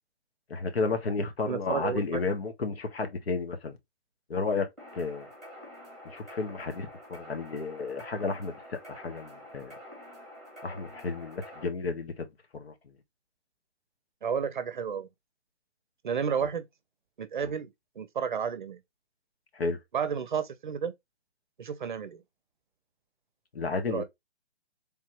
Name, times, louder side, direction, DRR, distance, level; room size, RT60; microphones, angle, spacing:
voice 1, 0.5-3.7 4.3-5.3 6.0-8.6 8.9-9.7 10.6-12.3 12.5-12.7 17.4-17.5 19.5-19.8 23.5-24.0, left 4 dB, 60° left, 1.4 m, -32 dB
voice 2, 1.5-2.2 14.2-15.1 16.0-16.7 17.2-17.7 18.0-18.8 19.9-20.9 21.6-22.2 23.9-24.0, right 7 dB, 45° right, 0.6 m, -31 dB
sound 1, 4.8-11.6, equal, ahead, 1.7 m, -47 dB
3.6 x 2.9 x 4.4 m
hypercardioid pair, 155°, 34 cm